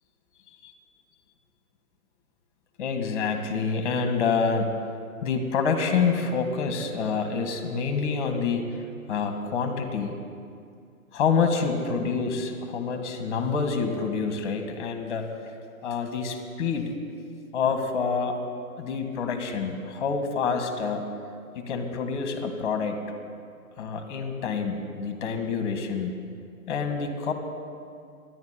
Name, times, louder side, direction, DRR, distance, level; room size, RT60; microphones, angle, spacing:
voice 1, 2.8-4.8 5.2-8.7 9.1-10.1 11.1-15.3 15.8-16.9 17.5-18.4 18.8-21.1 21.6-23.0 23.8-26.1 26.7-27.3, left 5 dB, 35° left, 5 dB, 2.2 m, -27 dB
13.0 x 11.0 x 9.9 m, 2.3 s
figure-of-eight pair, 130°, 45 cm